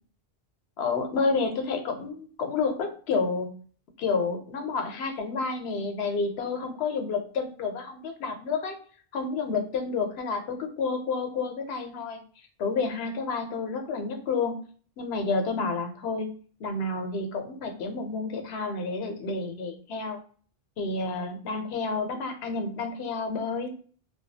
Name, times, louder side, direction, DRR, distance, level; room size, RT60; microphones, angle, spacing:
voice 1, 0.8-3.5 4.0-8.7 9.1-12.2 12.6-14.6 15.0-16.3 16.6-20.2 20.8-23.7, left 4 dB, 85° left, 5 dB, 0.8 m, -30 dB
2.3 x 2.2 x 2.6 m, 0.43 s
omnidirectional pair, 1.0 m